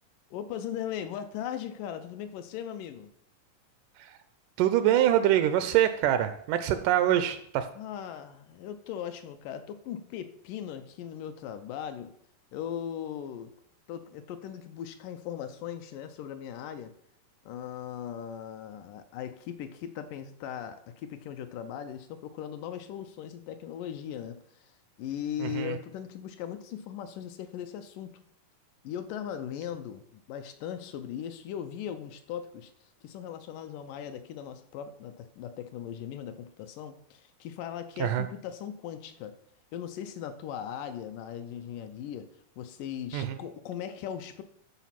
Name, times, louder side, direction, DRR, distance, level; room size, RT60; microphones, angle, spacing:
voice 1, 0.3-3.1 6.7-6.8 7.8-12.1 12.5-13.5 13.9-16.9 17.5-28.2 28.8-39.4 39.7-42.3 42.6-44.4, left 9 dB, 80° left, 9 dB, 2.1 m, -39 dB
voice 2, 4.6-7.7 25.4-25.8 38.0-38.2 43.1-43.4, right 11 dB, 80° right, 10 dB, 2.0 m, -25 dB
11.5 x 5.0 x 5.8 m, 0.67 s
omnidirectional pair, 4.0 m